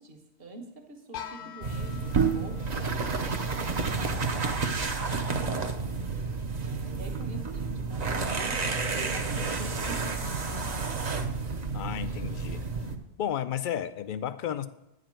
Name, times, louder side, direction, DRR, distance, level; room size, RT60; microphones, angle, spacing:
voice 1, 0.0-5.9 6.6-8.6 8.9-10.3, right 2 dB, 60° right, 2 dB, 1.5 m, -46 dB
sound 1, 1.1-6.9, left 9 dB, 80° left, 0.9 m, -47 dB
sound 2, 1.6-13.0, right 4 dB, 40° right, 0.8 m, -30 dB
voice 2, 11.7-12.6 13.2-14.7, left 10 dB, 60° left, 13 dB, 0.6 m, -32 dB
10.0 x 5.0 x 7.5 m, 0.91 s
omnidirectional pair, 1.1 m